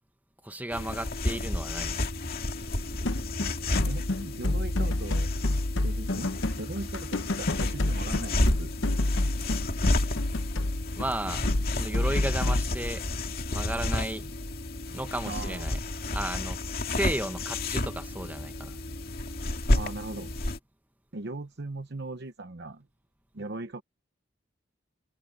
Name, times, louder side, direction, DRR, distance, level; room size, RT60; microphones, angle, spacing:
voice 1, 0.4-2.0 11.0-11.5 11.8-13.1 13.5-14.3 14.9-15.8 16.1-16.6 16.9-18.8, right 1 dB, 10° right, 1.3 m, -34 dB
sound 1, 0.7-20.6, left 1 dB, 50° left, 2.3 m, -31 dB
sound 2, 3.0-12.7, left 2 dB, 75° left, 1.1 m, -29 dB
voice 2, 3.6-5.3 5.8-6.3 6.6-8.7 15.2-15.7 19.7-20.3 21.1-22.9 23.3-23.8, right 2 dB, 60° right, 1.0 m, -39 dB
head